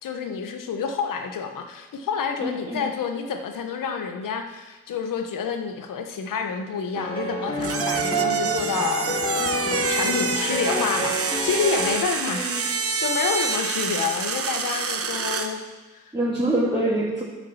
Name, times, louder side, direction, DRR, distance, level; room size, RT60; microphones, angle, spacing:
voice 1, 0.0-9.1 9.6-15.6 15.9-16.0, left 6 dB, 75° left, 5 dB, 1.3 m, -28 dB
voice 2, 2.4-2.9 12.3-12.7 16.1-17.2, right 1 dB, 15° right, -7 dB, 2.9 m, -25 dB
sound 1, 6.9-12.0, right 1 dB, 15° left, 2.4 m, -28 dB
sound 2, 7.6-15.6, right 5 dB, 45° right, 1.0 m, -27 dB
8.7 x 6.3 x 7.2 m, 1.3 s
supercardioid pair, 50°, 33 cm